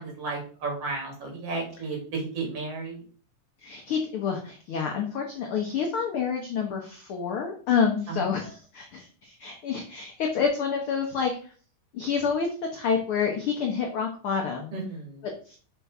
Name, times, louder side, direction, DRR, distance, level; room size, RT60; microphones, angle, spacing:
voice 1, 0.0-3.0 8.1-8.2 14.7-15.2, right 3 dB, 50° right, 1 dB, 2.7 m, -33 dB
voice 2, 3.6-11.5 11.9-14.7 15.2-15.6, left 6 dB, 85° left, 2 dB, 1.2 m, -28 dB
5.7 x 4.6 x 4.7 m, 0.42 s
omnidirectional pair, 3.7 m